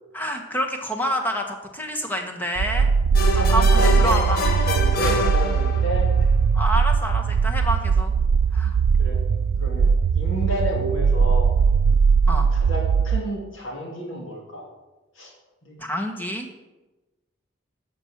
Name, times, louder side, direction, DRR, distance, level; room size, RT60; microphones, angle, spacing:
voice 1, 0.1-2.9 3.3-4.4 6.5-8.1 8.5-8.8 12.3-12.5 15.8-16.5, equal, 10° left, 3 dB, 1.2 m, -28 dB
sound 1, 2.6-13.2, right 5 dB, 75° right, 0.3 m, -20 dB
sound 2, 3.1-6.1, left 3 dB, 50° left, 1.3 m, -26 dB
voice 2, 3.4-6.1 9.0-9.2 9.6-11.5 12.5-14.6 15.2-15.3 15.6-15.7, equal, 85° left, -1 dB, 2.7 m, -31 dB
11.5 x 6.2 x 7.3 m, 1.1 s
head